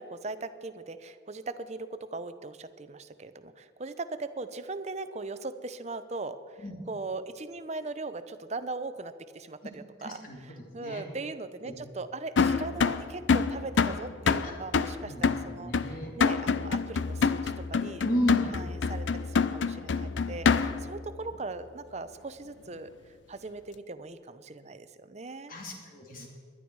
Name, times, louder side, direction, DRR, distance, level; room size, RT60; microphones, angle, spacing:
voice 1, 0.0-18.0 18.4-25.5 26.2-26.3, right 3 dB, 35° right, 11 dB, 0.7 m, -39 dB
voice 2, 10.0-10.4 10.8-11.0 11.6-11.7 14.4-14.5 15.0-16.1 18.0-18.5 25.5-26.3, equal, 50° left, 0 dB, 2.7 m, -33 dB
sound 1, 12.4-21.0, left 5 dB, 80° left, 0.5 m, -27 dB
20.5 x 11.0 x 4.7 m, 2.1 s
head